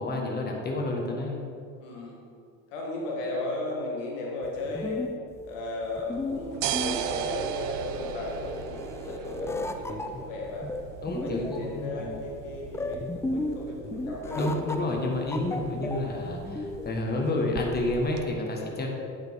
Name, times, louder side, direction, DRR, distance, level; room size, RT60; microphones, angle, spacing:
voice 1, 0.0-1.4 11.0-12.1 14.3-18.9, left 2 dB, 25° left, 0 dB, 1.4 m, -29 dB
voice 2, 1.8-2.2 2.7-5.1 5.4-10.7 11.1-14.4 15.5-15.6, left 2 dB, 90° left, -2 dB, 1.5 m, -35 dB
sound 1, 4.4-17.0, left 2 dB, 10° left, 0.3 m, -35 dB
sound 2, 6.1-18.2, right 10 dB, 60° right, 0.6 m, -38 dB
9.0 x 5.6 x 3.6 m, 2.4 s
supercardioid pair, 85°, 36 cm